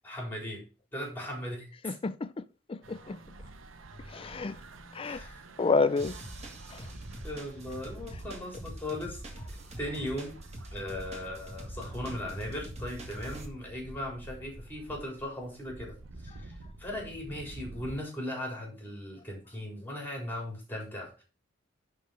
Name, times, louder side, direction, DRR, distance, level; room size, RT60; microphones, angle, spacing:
voice 1, 0.0-0.6 0.9-2.0 5.0-5.5 7.2-9.2 9.5-10.3 10.7-16.0 16.2-16.5 16.8-21.2, left 1 dB, 10° left, 4.0 m, -38 dB
voice 2, 1.8-2.4 2.7-3.2 4.1-4.6 4.9-5.2 5.6-6.1 6.7-6.8, left 4 dB, 30° left, 0.4 m, -29 dB
sound 1, 2.8-18.0, right 2 dB, 90° right, 0.9 m, -47 dB
sound 2, 6.0-13.5, equal, 35° right, 2.0 m, -45 dB
10.5 x 4.6 x 5.1 m
head